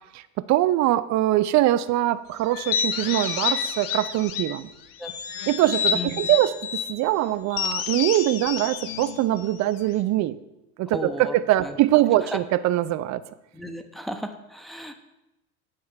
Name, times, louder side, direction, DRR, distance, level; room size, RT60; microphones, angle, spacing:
voice 1, 0.5-4.7 5.5-6.5 6.9-10.4 10.8-13.2, right 14 dB, 40° right, 15 dB, 0.6 m, -22 dB
sound 1, 2.5-4.6 5.0-6.9 7.5-10.0, left 7 dB, 50° left, 1.1 m, -29 dB
voice 2, 5.9-6.3 10.9-11.8 12.3-12.4 13.5-14.9, equal, ahead, 6 dB, 0.9 m, -34 dB
8.9 x 6.3 x 4.6 m, 0.95 s
hypercardioid pair, 75°, 43 cm